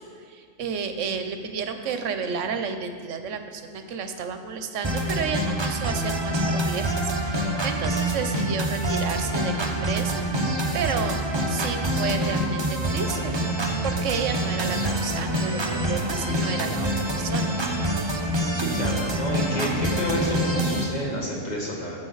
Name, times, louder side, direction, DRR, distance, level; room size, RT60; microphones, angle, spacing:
voice 1, 0.3-13.4 13.8-16.9 17.2-17.9, right 6 dB, 75° right, 7 dB, 1.1 m, -31 dB
sound 1, 4.8-20.8, right 1 dB, 25° right, 0.7 m, -26 dB
voice 2, 18.5-22.0, equal, 35° left, -3 dB, 1.8 m, -30 dB
12.5 x 7.2 x 3.9 m, 2.2 s
omnidirectional pair, 1.3 m